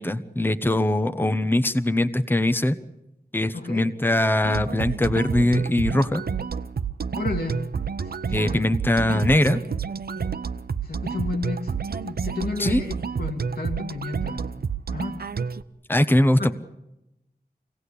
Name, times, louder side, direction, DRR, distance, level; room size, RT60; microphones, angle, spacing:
voice 1, 0.0-2.8 3.3-6.2 8.3-9.6 12.6-12.8 15.9-16.5, left 1 dB, 15° left, 9 dB, 1.0 m, -21 dB
voice 2, 3.5-3.9 7.1-7.7 8.0-8.6 9.1-9.5 10.8-11.7 12.0-14.4 14.9-15.2 16.4-16.5, left 3 dB, 80° left, 2 dB, 2.6 m, -32 dB
sound 1, 4.4-15.6, right 6 dB, 75° right, 0.8 m, -29 dB
24.5 x 17.5 x 8.4 m, 0.91 s
wide cardioid pair, 65°, 16 cm